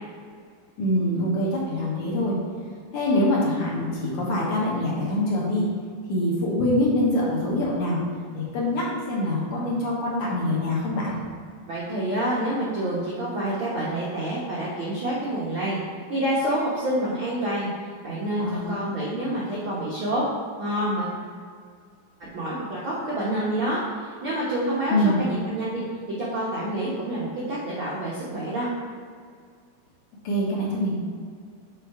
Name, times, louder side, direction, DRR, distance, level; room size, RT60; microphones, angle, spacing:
voice 1, 0.8-2.3 2.9-5.7 6.1-8.0 8.3-11.1 18.4-18.6 24.9-25.2 30.2-31.0, left 1 dB, 60° left, -5 dB, 2.4 m, -24 dB
voice 2, 11.7-15.8 16.1-17.7 18.0-20.2 20.6-21.2 22.3-25.8 26.2-28.7, right 1 dB, 80° right, -8 dB, 1.1 m, -27 dB
8.0 x 4.5 x 4.7 m, 2.1 s
omnidirectional pair, 4.4 m